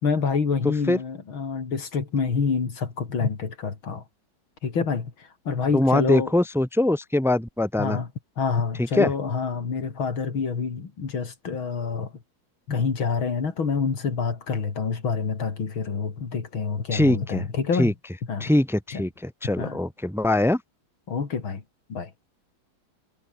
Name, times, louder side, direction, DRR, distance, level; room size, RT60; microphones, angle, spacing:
voice 1, 0.0-4.0 4.6-6.3 7.8-8.1 8.4-12.1 12.7-17.9 18.3-18.5 18.9-19.0 19.6-19.8 21.1-21.6 21.9-22.1, left 5 dB, 85° left, 3.8 m, -27 dB
voice 2, 5.7-8.0 8.8-9.1 16.9-17.4 17.8-17.9 18.4-20.6, left 1 dB, ahead, 1.8 m, -22 dB
omnidirectional pair, 2.2 m